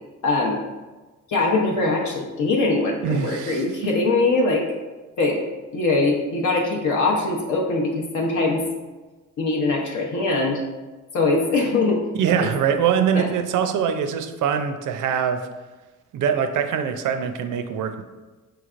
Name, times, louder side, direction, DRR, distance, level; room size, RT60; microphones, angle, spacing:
voice 1, 0.2-0.6 1.3-4.6 5.2-5.4 5.7-8.6 9.4-10.6 11.1-12.0 13.1-13.3, left 3 dB, 65° left, -1 dB, 0.7 m, -22 dB
voice 2, 3.0-3.8 12.2-15.5 16.1-18.0, right 7 dB, 70° right, 8 dB, 0.4 m, -23 dB
4.5 x 3.2 x 2.4 m, 1.2 s
cardioid pair, 105°, 32 cm